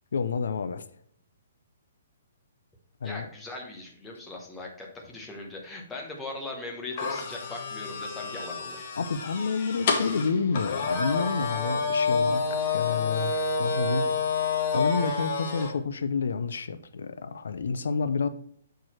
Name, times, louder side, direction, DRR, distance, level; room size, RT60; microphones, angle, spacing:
voice 1, 0.1-0.8 3.0-3.3 9.0-14.1 14.7-18.3, left 5 dB, 75° left, 12 dB, 0.5 m, -29 dB
voice 2, 3.0-8.8, left 2 dB, 5° left, -1 dB, 1.0 m, -39 dB
sound 1, 7.0-15.7, left 4 dB, 35° left, 1.0 m, -29 dB
6.3 x 4.6 x 4.4 m, 0.64 s
hypercardioid pair, 175°, 0 cm